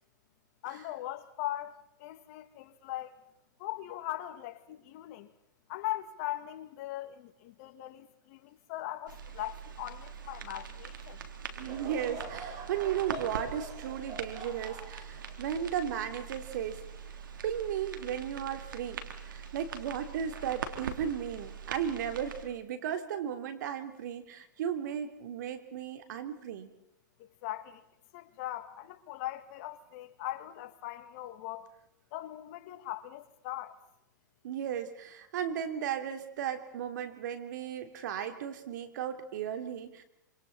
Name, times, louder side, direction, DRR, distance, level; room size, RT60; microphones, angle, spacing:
voice 1, 0.6-1.7 2.0-3.2 3.6-5.3 5.7-11.2 27.2-27.8 28.1-31.7 32.1-33.8, left 14 dB, 50° left, 2.3 m, -40 dB
sound 1, 9.1-22.5, right 6 dB, 85° right, 3.3 m, -43 dB
Laughter / Crowd, 11.6-17.0 17.6-17.7 18.5-18.7, right 4 dB, 35° right, 4.9 m, -45 dB
voice 2, 11.6-16.8 17.4-19.0 19.3-26.7 34.4-40.0, right 9 dB, 65° right, 3.3 m, -35 dB
27.0 x 27.0 x 4.2 m
hypercardioid pair, 125°, 11 cm